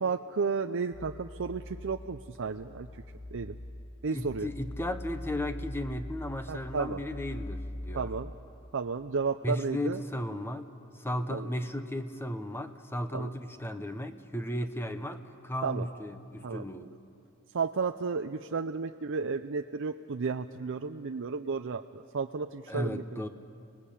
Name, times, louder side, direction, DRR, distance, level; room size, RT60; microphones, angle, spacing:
voice 1, 0.0-3.0 3.3-3.6 4.0-4.5 6.5-7.0 7.9-8.3 8.7-10.0 11.3-11.5 13.1-13.3 15.6-15.9 16.4-16.9 17.5-23.2, right 5 dB, 60° right, 7 dB, 0.6 m, -33 dB
sound 1, 0.9-8.4, left 1 dB, 35° left, 1.8 m, -42 dB
voice 2, 4.1-8.1 9.4-10.7 10.9-16.9 22.7-23.3, left 1 dB, 10° left, 9 dB, 1.0 m, -35 dB
29.5 x 20.0 x 8.5 m, 2.5 s
head